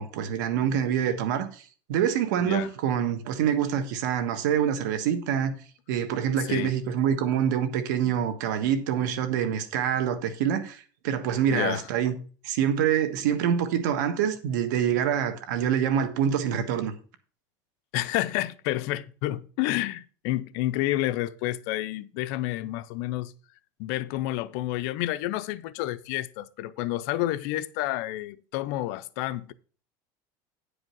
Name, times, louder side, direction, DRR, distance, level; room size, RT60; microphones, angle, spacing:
voice 1, 0.0-1.6 1.9-5.5 5.9-12.1 12.4-16.9, right 9 dB, 85° right, 1.4 m, -26 dB
voice 2, 11.5-11.8 17.9-23.3 23.8-29.5, left 15 dB, 70° left, 0.6 m, -29 dB
9.7 x 5.0 x 6.2 m
supercardioid pair, 130°, 10 cm